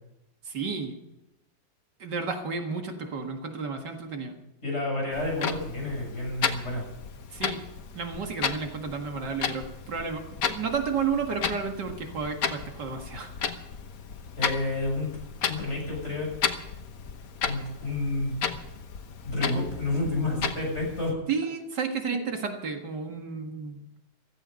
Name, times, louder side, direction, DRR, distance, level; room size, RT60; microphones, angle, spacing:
voice 1, 0.5-1.0 2.0-4.3 7.3-7.7 7.9-13.3 19.5-19.7 21.3-23.8, right 5 dB, 75° right, 4 dB, 2.4 m, -32 dB
voice 2, 4.6-6.9 14.4-15.1 15.4-16.3 17.4-18.4 19.2-21.1 22.1-22.3, left 2 dB, 40° left, -1 dB, 7.0 m, -30 dB
Clock, 5.1-21.1, left 6 dB, 55° left, 1.5 m, -34 dB
16.0 x 14.5 x 5.3 m, 0.89 s
omnidirectional pair, 1.9 m